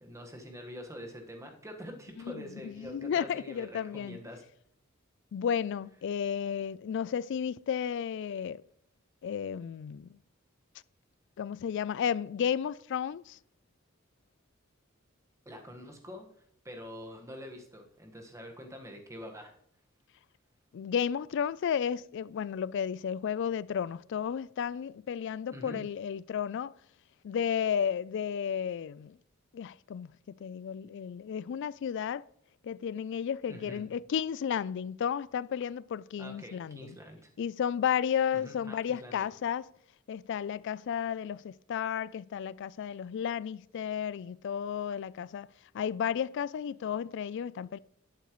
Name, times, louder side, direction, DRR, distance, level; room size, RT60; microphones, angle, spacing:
voice 1, 0.0-4.4 15.4-16.2 16.6-19.5 25.5-25.8 33.5-33.8 36.2-37.3 38.3-39.3, equal, 15° right, 1.4 m, -45 dB
voice 2, 2.3-4.2 5.3-8.6 9.2-10.2 11.4-13.4 20.7-26.7 27.2-29.2 29.5-30.1 30.4-32.2 32.6-37.0 37.4-39.7 40.1-45.5 45.7-47.8, left 8 dB, 60° left, 0.3 m, -33 dB
11.0 x 8.5 x 3.1 m
head